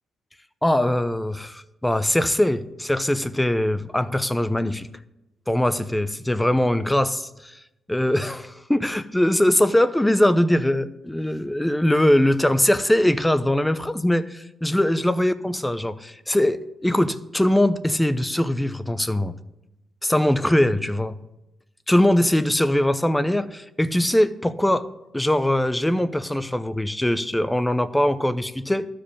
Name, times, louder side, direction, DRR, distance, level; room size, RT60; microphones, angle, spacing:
voice 1, 0.6-4.9 5.5-7.6 7.9-19.3 20.0-21.1 21.9-24.9 25.1-28.9, left 1 dB, 5° left, 12 dB, 0.7 m, -21 dB
12.5 x 5.1 x 8.6 m, 0.92 s
cardioid pair, 90°, 0 cm